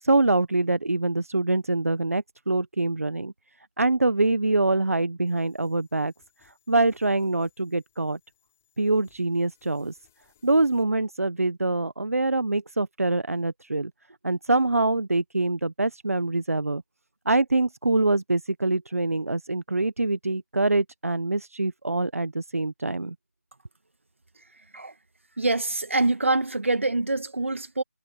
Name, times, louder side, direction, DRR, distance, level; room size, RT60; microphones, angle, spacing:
voice 1, 0.0-3.3 3.8-6.1 6.4-8.2 8.8-10.0 10.4-13.9 14.2-16.8 17.2-23.1, right 2 dB, 75° right, 1.2 m, -24 dB
sound 1, 5.3-10.8, left 11 dB, 10° left, 7.2 m, -66 dB
voice 2, 25.4-27.8, right 2 dB, 60° right, 1.9 m, -25 dB
figure-of-eight pair, 180°, 8 cm